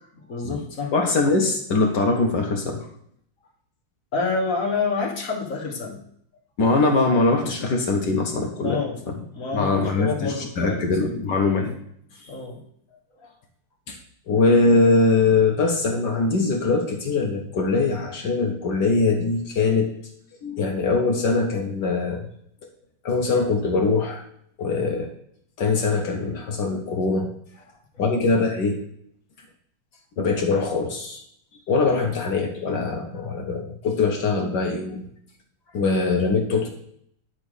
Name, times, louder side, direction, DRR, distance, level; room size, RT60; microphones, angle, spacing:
voice 1, 0.3-0.9 4.1-6.0 8.6-9.0 9.3-10.8 12.3-12.6 28.0-28.2, left 4 dB, 45° left, 0 dB, 1.6 m, -27 dB
voice 2, 0.9-2.8 6.6-8.8 9.5-11.7 12.2-12.3 13.9-14.0 14.3-19.9 20.4-22.3 23.0-24.2 24.6-25.1 25.6-27.3 28.0-28.8 30.2-31.2 31.7-35.0 35.7-36.7, left 3 dB, 60° left, 2 dB, 1.4 m, -22 dB
9.9 x 3.5 x 6.2 m, 0.67 s
omnidirectional pair, 2.4 m